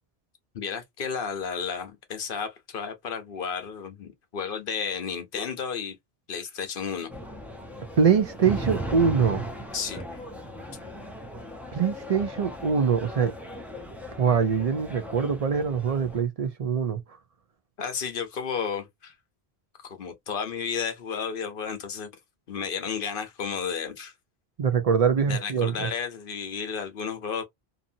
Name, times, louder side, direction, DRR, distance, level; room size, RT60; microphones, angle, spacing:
voice 1, 0.5-6.0 6.3-7.1 9.7-10.0 17.8-19.1 19.8-22.1 22.5-24.1 25.2-27.4, left 6 dB, 60° left, 0.9 m, -32 dB
sound 1, 7.1-16.2, right 1 dB, ahead, 0.6 m, -37 dB
voice 2, 8.0-9.4 11.7-13.3 14.2-17.0 24.6-25.9, right 6 dB, 50° right, 0.5 m, -23 dB
2.7 x 2.6 x 2.5 m
omnidirectional pair, 1.1 m